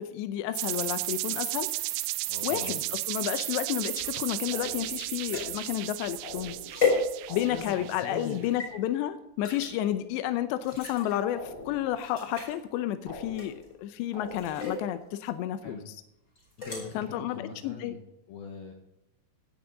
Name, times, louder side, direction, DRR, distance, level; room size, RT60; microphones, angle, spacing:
voice 1, 0.0-1.7 2.4-6.6 7.3-15.9 16.9-18.0, left 12 dB, 80° left, 10 dB, 2.8 m, -31 dB
sound 1, 0.5-8.3, right 19 dB, 90° right, 2.3 m, -34 dB
voice 2, 2.3-2.8 7.5-8.4 15.6-15.8 16.6-18.0 18.3-18.7, left 4 dB, 65° left, 1 dB, 2.8 m, -41 dB
sound 2, 3.9-7.6 8.1-8.7 9.4-9.7 10.6-11.2 11.6-11.7 12.0-12.6 13.3-13.8 14.3-14.8 16.4-16.8, left 4 dB, 20° left, 5.0 m, -33 dB
sound 3, 4.5-5.2 6.2-6.9 7.3-8.0 11.3-12.1 13.1-13.8 14.1-14.9, left 2 dB, 40° left, 5.2 m, -44 dB
17.0 x 8.8 x 3.9 m, 0.88 s
omnidirectional pair, 5.2 m